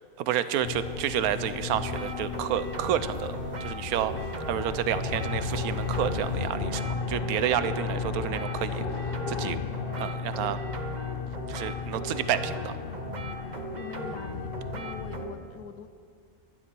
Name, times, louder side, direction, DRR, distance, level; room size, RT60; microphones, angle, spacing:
voice 1, 0.2-4.1 4.5-9.6 10.0-10.6 11.5-12.8, right 10 dB, 90° right, 13 dB, 1.1 m, -30 dB
sound 1, 0.6-15.3, left 5 dB, 50° left, 0.8 m, -34 dB
sound 2, 0.6-6.5, left 1 dB, 5° right, 2.1 m, -45 dB
sound 3, 1.7-15.3, right 3 dB, 35° right, 1.0 m, -39 dB
voice 2, 13.8-15.9, left 7 dB, 85° left, 10 dB, 1.2 m, -43 dB
12.5 x 11.0 x 6.1 m, 2.2 s
omnidirectional pair, 1.5 m